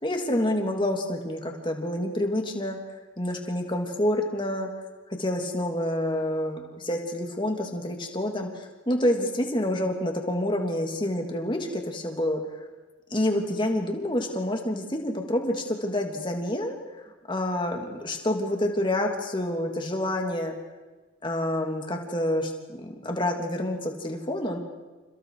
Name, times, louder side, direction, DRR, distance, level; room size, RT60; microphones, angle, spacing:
voice 1, 0.0-2.8 3.2-4.7 5.2-12.4 13.1-16.8 17.3-20.5 21.2-24.6, left 1 dB, 25° left, 2 dB, 3.0 m, -28 dB
29.5 x 29.0 x 5.0 m, 1.3 s
head